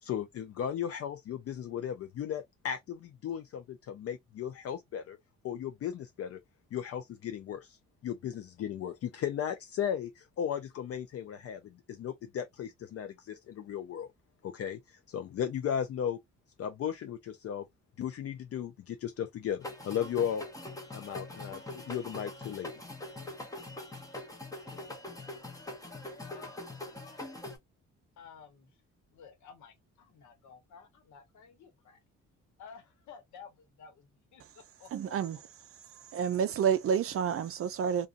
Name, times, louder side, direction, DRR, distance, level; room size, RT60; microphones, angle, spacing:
voice 1, 0.0-5.2 5.4-6.4 6.7-14.1 14.4-16.2 16.6-17.7 18.0-20.4 20.9-22.7, left 9 dB, 50° left, 0.4 m, -36 dB
sound 1, 19.6-27.6, left 2 dB, 10° left, 0.8 m, -43 dB
voice 2, 26.2-26.7 28.2-28.7 29.1-32.0 32.6-35.1, left 6 dB, 70° left, 1.1 m, -53 dB
voice 3, 34.9-35.4 35.9-38.1, right 8 dB, 50° right, 0.4 m, -29 dB
2.5 x 2.3 x 2.4 m
cardioid pair, 90°, 30 cm